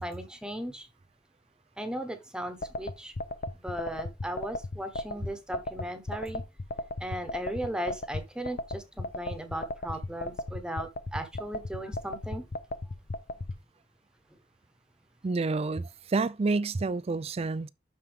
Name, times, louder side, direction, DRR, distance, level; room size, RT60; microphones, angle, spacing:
voice 1, 0.0-0.9 1.8-3.1 3.6-6.4 7.0-12.4, right 1 dB, 5° right, 1.1 m, -37 dB
sound 1, 2.6-13.6, left 2 dB, 50° left, 0.7 m, -34 dB
voice 2, 15.2-17.7, right 3 dB, 30° right, 0.4 m, -29 dB
12.0 x 4.5 x 3.5 m
head